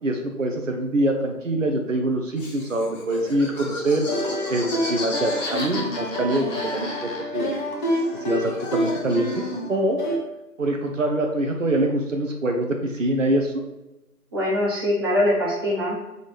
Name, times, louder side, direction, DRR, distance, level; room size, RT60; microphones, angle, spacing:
voice 1, 0.0-4.1 4.5-7.5 8.1-10.0 10.6-13.5, right 1 dB, 55° right, 3 dB, 1.0 m, -24 dB
Laughter, 2.4-7.5 7.8-9.7, left 1 dB, 55° left, 1.7 m, -35 dB
sound 1, 4.1-10.2, equal, 30° left, 0.9 m, -28 dB
voice 2, 14.3-16.1, left 1 dB, 15° right, -7 dB, 0.8 m, -23 dB
4.9 x 4.0 x 5.2 m, 0.98 s
figure-of-eight pair, 150°, 46 cm